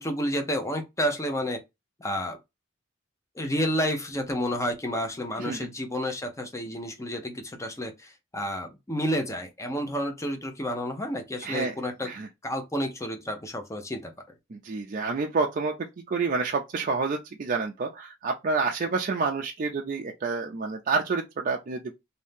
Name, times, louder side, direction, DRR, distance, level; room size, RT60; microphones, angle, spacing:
voice 1, 0.0-1.6 2.0-2.4 3.4-12.1 12.4-14.1, equal, 15° left, 0.7 m, -30 dB
voice 2, 11.4-11.8 12.0-12.3 14.5-15.7 16.1-21.9, right 4 dB, 40° right, 0.4 m, -28 dB
2.7 x 2.7 x 3.5 m
head